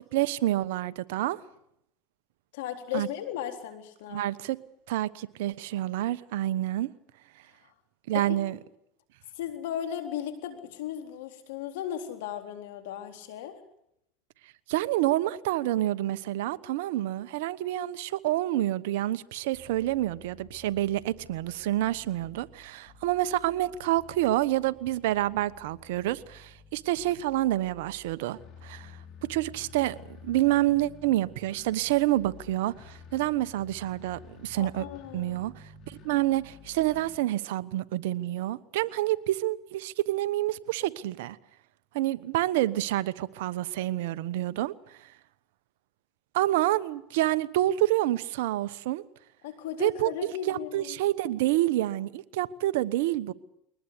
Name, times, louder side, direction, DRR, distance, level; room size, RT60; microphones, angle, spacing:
voice 1, 0.1-1.4 2.9-3.1 4.1-4.6 4.9-6.9 8.1-8.6 14.7-29.0 29.3-34.9 35.1-41.4 41.9-45.1 46.3-49.0 49.8-53.3, right 15 dB, 85° right, 1.1 m, -28 dB
voice 2, 2.5-4.3 8.1-8.6 9.4-13.6 34.6-35.4 49.4-51.0, left 10 dB, 85° left, 4.0 m, -36 dB
sound 1, 19.5-37.2, left 5 dB, 50° left, 6.2 m, -51 dB
22.5 x 19.5 x 8.4 m
supercardioid pair, 95°, 0 cm